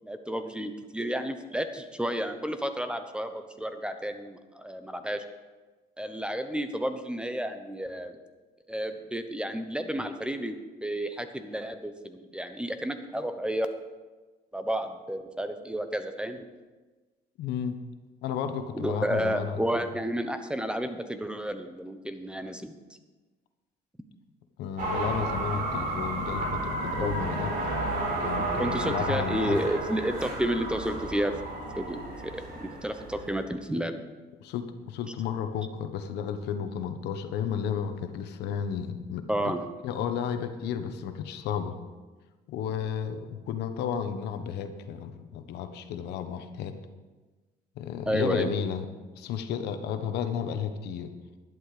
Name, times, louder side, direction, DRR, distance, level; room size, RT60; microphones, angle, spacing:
voice 1, 0.0-5.2 6.0-8.2 8.7-10.5 10.8-13.7 14.5-16.5 18.7-22.7 27.0-27.1 28.6-31.4 31.8-34.0 39.3-39.6 48.1-48.5, right 1 dB, 5° right, 8 dB, 0.9 m, -31 dB
voice 2, 17.4-17.8 18.2-19.6 24.6-27.5 28.2-29.6 34.4-39.5 39.8-41.8 42.5-46.8 47.8-48.9 49.2-51.1, left 8 dB, 80° left, 8 dB, 1.2 m, -32 dB
sound 1, 24.8-33.4, right 2 dB, 60° right, 4.1 m, -32 dB
11.5 x 11.0 x 5.0 m, 1.3 s
cardioid pair, 110°, 17 cm